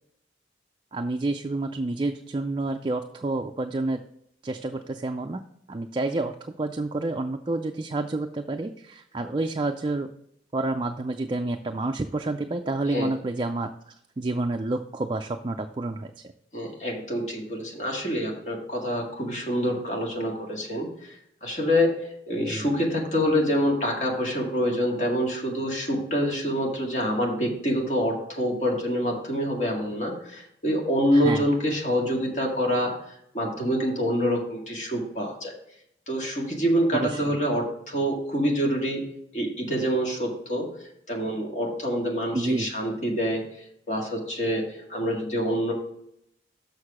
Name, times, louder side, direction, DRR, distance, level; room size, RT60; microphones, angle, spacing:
voice 1, 0.9-4.0 4.4-5.4 5.7-10.1 10.5-16.1 22.4-22.7 31.1-31.4 36.9-37.3 42.3-42.7, right 2 dB, 25° right, 5 dB, 0.3 m, -29 dB
voice 2, 16.5-21.1 21.4-21.9 22.3-35.5 36.1-39.0 39.3-40.7 41.1-43.4 43.9-45.7, equal, 45° left, -1 dB, 2.0 m, -26 dB
6.5 x 6.4 x 4.9 m, 0.74 s
head